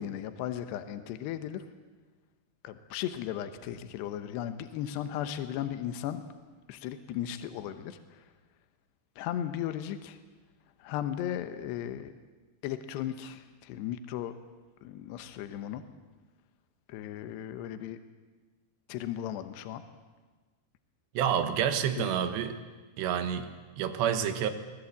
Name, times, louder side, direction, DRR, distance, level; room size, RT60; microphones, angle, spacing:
voice 1, 0.0-1.6 2.6-6.2 6.7-8.2 9.2-10.2 10.8-12.1 12.6-14.3 14.8-15.8 16.9-18.0 18.9-19.8 22.0-22.2, left 11 dB, 80° left, 9 dB, 3.1 m, -36 dB
voice 2, 21.2-22.6 23.0-23.5 23.8-24.5, right 8 dB, 80° right, 9 dB, 3.6 m, -28 dB
25.0 x 18.5 x 8.3 m, 1.3 s
omnidirectional pair, 4.9 m